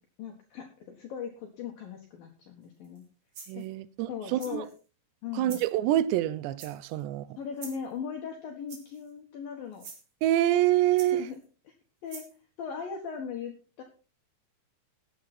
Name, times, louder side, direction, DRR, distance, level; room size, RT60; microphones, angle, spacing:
voice 1, 0.2-3.0 3.5-3.7 4.1-4.7 5.2-5.6 7.4-9.9 11.1-11.4 12.0-12.2 12.6-13.8, left 7 dB, 60° left, 2.8 m, -38 dB
sound 1, 2.8-3.0 3.3-3.7 4.4-4.8 5.4-5.7 6.6-7.0 7.6-7.9 8.7-9.1 9.7-10.0 11.0-11.4 12.1-12.3, right 5 dB, 40° right, 3.7 m, -46 dB
voice 2, 3.5-4.6 5.3-7.4 10.2-11.3, right 13 dB, 75° right, 2.8 m, -26 dB
16.0 x 9.6 x 4.4 m
omnidirectional pair, 5.4 m